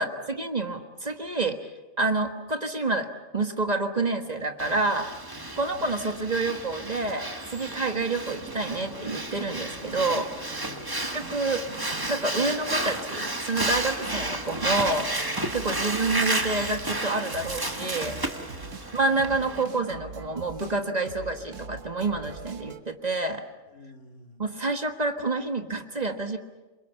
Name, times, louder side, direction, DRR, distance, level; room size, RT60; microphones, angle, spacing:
voice 1, 0.0-1.7 2.0-3.1 3.3-5.1 5.6-10.6 11.1-11.6 12.1-15.1 15.5-18.2 18.9-23.4 24.4-26.4, right 3 dB, 35° right, 6 dB, 1.6 m, -28 dB
Breathing, 4.6-19.6, right 1 dB, 20° right, 1.5 m, -32 dB
voice 2, 5.3-6.0 10.6-11.0 15.6-15.9 18.4-18.8 23.7-24.4, left 2 dB, 80° left, 3 dB, 2.8 m, -49 dB
sound 1, 7.6-22.8, right 5 dB, 85° right, 1.6 m, -43 dB
27.5 x 23.5 x 7.0 m, 1.1 s
omnidirectional pair, 1.3 m